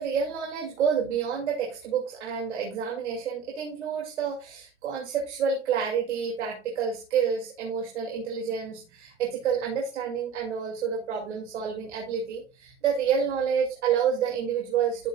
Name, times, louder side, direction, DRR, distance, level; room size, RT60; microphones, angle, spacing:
voice 1, 0.0-15.1, right 7 dB, 80° right, 0 dB, 2.6 m, -29 dB
13.0 x 6.5 x 2.3 m, 0.30 s
supercardioid pair, 150°, 34 cm